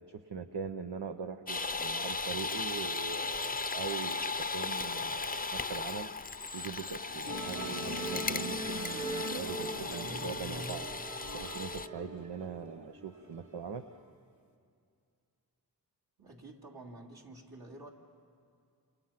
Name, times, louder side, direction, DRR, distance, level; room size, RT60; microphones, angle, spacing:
voice 1, 0.0-13.9, right 6 dB, 80° right, 7 dB, 0.8 m, -42 dB
sound 1, 1.5-11.9, left 4 dB, 20° left, 0.6 m, -36 dB
Musical instrument, 7.3-13.9, right 1 dB, 45° right, 2.7 m, -40 dB
voice 2, 16.2-17.9, right 2 dB, 60° right, -1 dB, 3.1 m, -49 dB
29.0 x 27.5 x 5.9 m, 2.4 s
cardioid pair, 45°, 41 cm